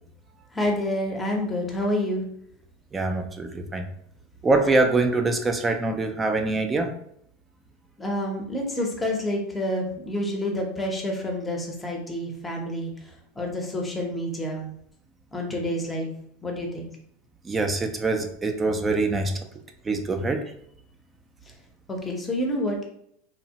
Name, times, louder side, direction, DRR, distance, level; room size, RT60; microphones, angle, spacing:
voice 1, 0.5-2.2 8.0-12.9 13.4-14.7 15.3-16.1 16.4-16.9 21.9-22.8, left 1 dB, 15° left, 1 dB, 0.7 m, -28 dB
voice 2, 2.9-3.8 4.4-6.9 17.5-19.3 19.9-20.4, right 3 dB, 20° right, 5 dB, 0.4 m, -24 dB
2.8 x 2.1 x 2.8 m, 0.69 s
hypercardioid pair, 110°, 0 cm